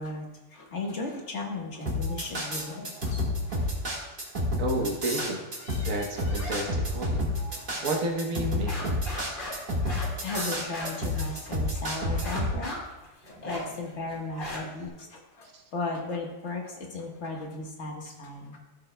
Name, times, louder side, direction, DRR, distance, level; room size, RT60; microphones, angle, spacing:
voice 1, 0.0-3.7 4.0-4.1 5.6-6.5 7.5-7.6 8.6-8.7 9.5-12.8 13.3-18.6, left 3 dB, 60° left, 0 dB, 1.7 m, -36 dB
sound 1, 1.9-12.5, left 1 dB, 40° right, 1.9 m, -29 dB
voice 2, 4.6-5.5 5.8-7.3 7.8-9.0, right 2 dB, 85° right, 1 dB, 1.5 m, -31 dB
sound 2, 6.3-6.5 6.8-7.6 8.0-8.1 8.4-11.7 12.1-14.9, left 1 dB, 40° left, 2.3 m, -39 dB
14.0 x 7.5 x 2.2 m, 1.0 s
omnidirectional pair, 1.4 m